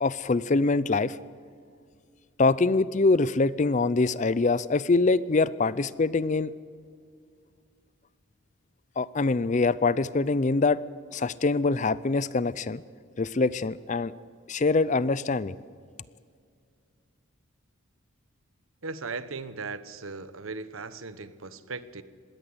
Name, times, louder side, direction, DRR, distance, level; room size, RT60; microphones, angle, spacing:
voice 1, 0.0-1.2 2.4-6.5 9.0-10.8 11.1-12.8 13.2-14.1 14.5-15.6, left 3 dB, 35° left, 18 dB, 0.5 m, -24 dB
voice 2, 18.8-22.0, right 4 dB, 70° right, 14 dB, 1.1 m, -37 dB
21.0 x 17.0 x 7.9 m, 2.1 s
head